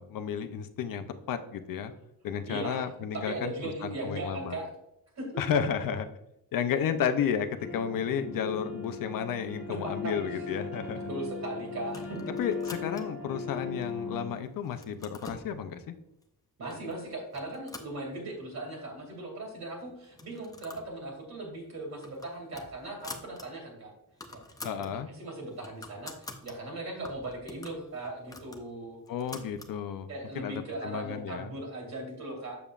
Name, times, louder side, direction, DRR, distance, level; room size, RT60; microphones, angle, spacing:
voice 1, 0.0-1.9 2.2-3.5 3.8-4.6 5.4-6.1 6.5-11.1 12.4-15.8 24.6-25.1 29.1-30.1 30.3-31.5, left 7 dB, 65° left, 8 dB, 0.6 m, -32 dB
voice 2, 2.4-4.7 5.2-5.4 9.7-10.5 11.1-12.2 16.6-23.9 24.3-24.4 24.7-29.0 30.1-32.6, right 2 dB, 50° right, 1 dB, 2.4 m, -38 dB
sound 1, 7.6-14.3, left 5 dB, 40° left, 1.2 m, -38 dB
sound 2, 11.9-13.3 13.8-14.3 14.6-15.5 16.2-16.3 16.7-17.0 17.3-18.5 18.9-19.0 19.2-19.3 20.0-20.9 21.2-21.4 21.8-23.5 23.8-23.9 24.1-24.9 25.3-26.6 27.0-29.8, left 2 dB, 10° left, 0.5 m, -46 dB
7.0 x 6.9 x 2.4 m, 0.82 s
wide cardioid pair, 175°, 37 cm